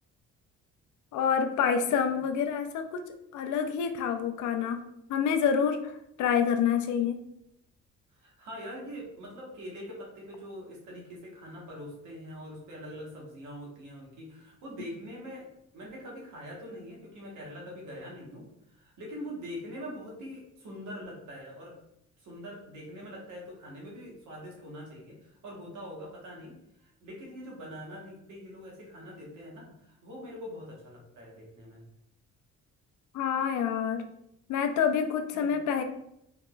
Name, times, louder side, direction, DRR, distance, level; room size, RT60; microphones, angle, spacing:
voice 1, 1.1-3.0 3.3-4.8 5.1-5.9 6.2-7.2 33.1-34.0 34.5-35.8, left 7 dB, 75° left, 7 dB, 0.5 m, -27 dB
voice 2, 8.1-15.5 15.7-21.8 22.2-31.9 35.3-35.6, equal, 80° right, -2 dB, 1.2 m, -43 dB
3.7 x 2.8 x 2.3 m, 0.78 s
cardioid pair, 90°, 30 cm